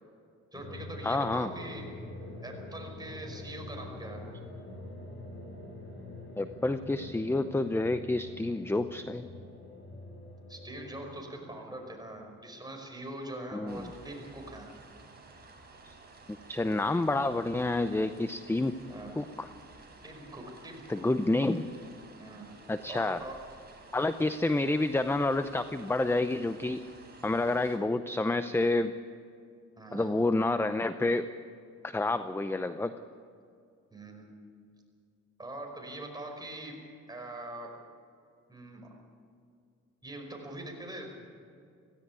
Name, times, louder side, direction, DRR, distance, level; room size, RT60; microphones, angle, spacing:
sound 1, 0.5-12.6, left 2 dB, 40° left, 6.7 m, -45 dB
voice 1, 0.5-1.9 2.4-4.2 10.5-14.7 18.9-19.1 20.0-21.0 22.2-22.5 22.9-23.4 29.8-30.1 33.9-34.3 35.4-36.8 37.1-37.7 38.5-38.9 40.0-41.3, right 1 dB, 15° right, 1 dB, 5.5 m, -43 dB
voice 2, 1.0-1.5 6.4-9.3 13.5-13.8 15.8-15.9 16.5-18.8 19.2-19.5 20.9-21.7 22.7-23.2 23.9-26.8 27.2-28.9 29.9-31.3 31.8-32.9, left 2 dB, 10° left, 11 dB, 0.6 m, -29 dB
sound 2, 13.7-27.8, right 3 dB, 35° right, 4.4 m, -53 dB
17.0 x 16.5 x 9.5 m, 2.3 s
cardioid pair, 90°, 30 cm